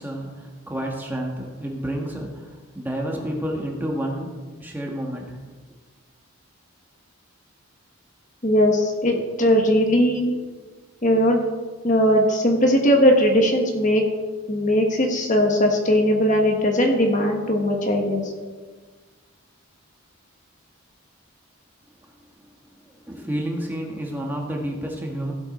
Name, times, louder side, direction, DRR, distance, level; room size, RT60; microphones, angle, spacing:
voice 1, 0.0-5.4 23.1-25.3, right 1 dB, 10° right, -1 dB, 1.5 m, -30 dB
voice 2, 8.4-10.3 11.0-11.5 11.8-14.0 14.5-18.2, equal, 35° left, 2 dB, 1.4 m, -19 dB
16.0 x 7.7 x 4.3 m, 1.4 s
head